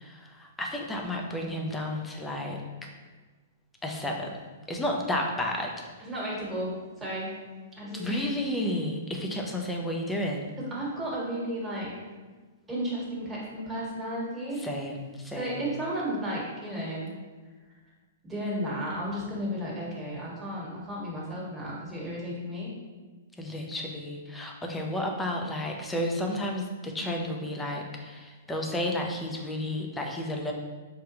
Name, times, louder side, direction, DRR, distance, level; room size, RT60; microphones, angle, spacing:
voice 1, 0.0-2.9 3.8-4.4 4.7-6.1 7.9-10.5 14.5-15.6 23.4-30.5, left 1 dB, 10° left, 0 dB, 0.5 m, -32 dB
voice 2, 6.0-6.7 7.0-7.3 7.8-8.2 10.6-11.9 12.7-14.6 15.3-17.1 18.2-22.7, equal, 10° right, -6 dB, 1.2 m, -33 dB
4.9 x 2.3 x 2.9 m, 1.3 s
hypercardioid pair, 140°, 0 cm